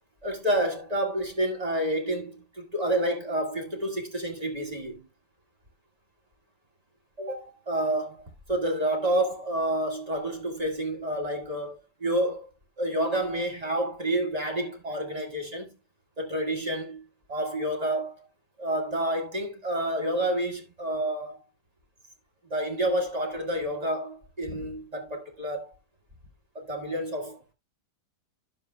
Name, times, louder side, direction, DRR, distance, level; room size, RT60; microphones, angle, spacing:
voice 1, 0.2-5.0 7.2-12.5 12.8-15.8 16.2-17.0 17.3-18.3 18.6-21.4 22.5-25.7 26.6-27.5, right 1 dB, 20° right, 1.9 m, -29 dB
12.5 x 7.1 x 2.2 m
omnidirectional pair, 1.8 m